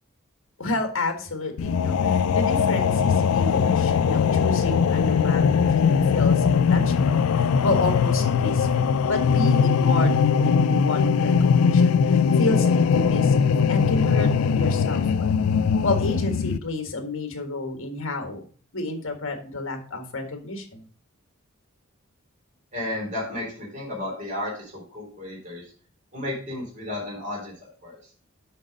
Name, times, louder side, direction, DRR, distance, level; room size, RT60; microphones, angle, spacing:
voice 1, 0.6-15.3 15.8-18.4 18.7-20.8, left 2 dB, 60° left, 5 dB, 1.7 m, -30 dB
sound 1, 1.6-16.6, left 6 dB, 85° left, 0.4 m, -20 dB
voice 2, 22.7-25.7 26.1-27.5 27.8-28.0, left 1 dB, 35° right, -3 dB, 3.4 m, -33 dB
7.5 x 5.1 x 5.2 m, 0.42 s
head